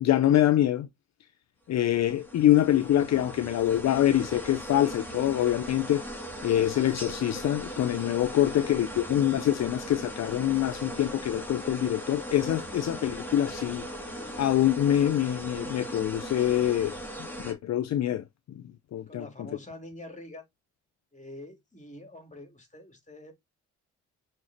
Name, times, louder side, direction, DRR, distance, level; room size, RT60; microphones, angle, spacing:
voice 1, 0.0-0.9 1.7-6.0 6.4-13.9 14.4-18.2 18.9-19.2, left 12 dB, 60° left, 0.6 m, -25 dB
sound 1, 1.7-17.5, equal, 5° left, 3.6 m, -39 dB
voice 2, 19.1-20.5 21.1-23.3, left 1 dB, 25° left, 3.6 m, -45 dB
6.2 x 4.4 x 4.0 m
supercardioid pair, 60°, 30 cm